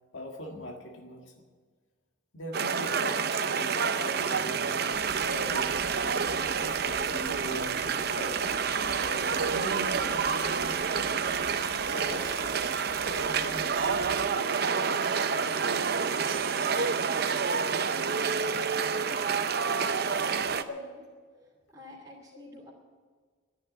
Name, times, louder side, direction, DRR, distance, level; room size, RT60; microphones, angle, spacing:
voice 1, 0.1-1.3 2.3-4.9 5.2-5.8 6.4-12.7 13.1-16.1 21.3-21.4, equal, 80° left, 2 dB, 1.8 m, -42 dB
sound 1, 2.5-20.6, right 6 dB, 55° right, 0.7 m, -28 dB
sound 2, 4.9-14.3, right 2 dB, 70° right, 1.6 m, -49 dB
Harp, 9.4-20.0, right 6 dB, 90° right, 0.5 m, -41 dB
voice 2, 20.2-21.0 21.7-22.7, left 1 dB, 15° right, -7 dB, 2.8 m, -49 dB
11.5 x 10.5 x 10.0 m, 1.5 s
head